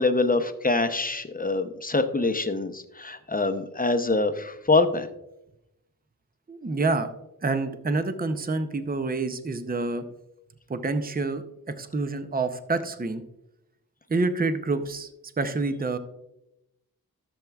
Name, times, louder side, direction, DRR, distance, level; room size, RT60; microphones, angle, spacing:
voice 1, 0.0-5.1, left 3 dB, 25° left, 8 dB, 0.6 m, -24 dB
voice 2, 6.5-7.1 7.4-10.0 10.7-13.2 14.1-15.1 15.4-16.0, right 3 dB, 25° right, 9 dB, 0.6 m, -27 dB
13.5 x 7.1 x 2.3 m, 0.87 s
wide cardioid pair, 80°, 36 cm